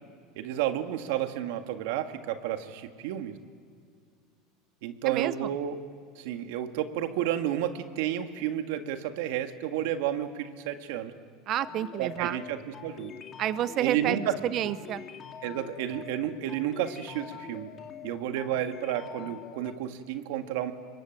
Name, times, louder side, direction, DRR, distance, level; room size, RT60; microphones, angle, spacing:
voice 1, 0.4-3.4 4.8-5.8 6.2-11.1 12.0-13.1 13.8-14.4 15.4-17.7 18.0-20.7, right 11 dB, 75° right, 7 dB, 1.9 m, -31 dB
voice 2, 5.0-5.5 11.5-12.4 13.4-14.2 14.4-15.0, right 12 dB, 45° right, 15 dB, 0.7 m, -29 dB
sound 1, 11.6-19.7, left 8 dB, 40° left, 2.4 m, -45 dB
26.0 x 22.5 x 9.0 m, 2.2 s
supercardioid pair, 120°, 0 cm